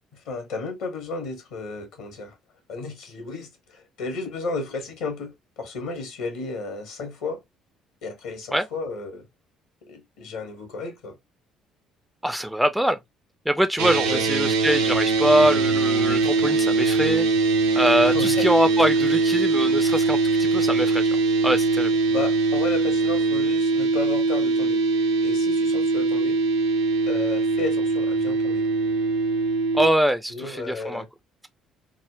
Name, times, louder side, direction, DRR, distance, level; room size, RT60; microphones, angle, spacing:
voice 1, 0.3-2.3 2.7-7.4 8.0-9.2 9.9-11.2 14.0-14.2 18.0-18.5 22.1-24.8 25.2-26.4 27.1-28.6 30.3-31.1, left 3 dB, 65° left, 0.9 m, -33 dB
voice 2, 12.2-13.0 13.5-17.3 17.7-21.1 21.4-21.9 29.7-31.0, equal, 5° right, 0.4 m, -23 dB
sound 1, 13.8-29.9, right 3 dB, 70° right, 0.5 m, -22 dB
3.5 x 2.0 x 2.4 m
figure-of-eight pair, 50°, 0 cm